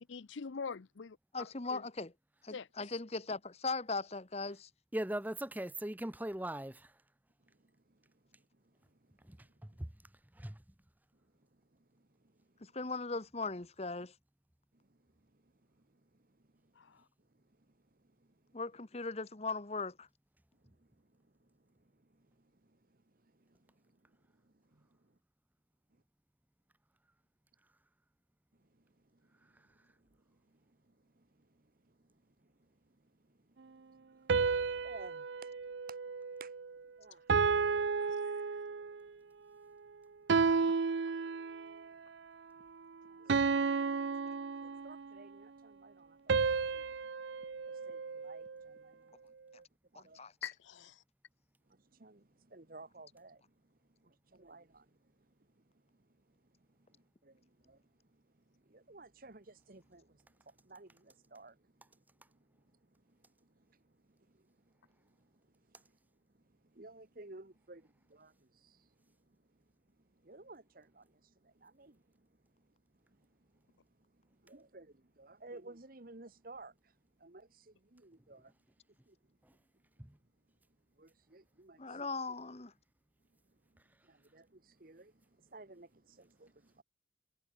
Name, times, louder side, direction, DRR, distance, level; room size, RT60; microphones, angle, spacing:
voice 1, 0.1-1.8 2.5-2.7 16.8-17.0 38.0-38.4 40.7-40.8 50.4-51.0, left 5 dB, 75° left, 0.6 m, -45 dB
voice 2, 1.3-2.1 2.4-4.7 12.7-14.1 18.5-20.1 49.9-50.3 81.8-82.7, left 3 dB, 35° left, 1.1 m, -39 dB
voice 3, 4.9-6.9 9.3-9.9 10.4-10.6, right 1 dB, 10° right, 0.7 m, -39 dB
voice 4, 7.4-9.8 11.1-12.7 14.7-18.5 20.5-25.1 28.5-35.5 35.9-36.0 36.4-36.5 37.0-37.3 38.8-39.0 43.1-43.5 43.9-44.3 44.6-49.2 49.9-50.2 51.7-66.0 66.3-78.5 79.1-79.4 79.7-79.8 81.0-82.1 83.3-86.8, right 2 dB, 50° right, 1.2 m, -59 dB
sound 1, 34.3-36.8 37.3-39.0 40.3-41.8 43.3-45.2 46.3-48.7, right 5 dB, 65° right, 0.5 m, -32 dB
head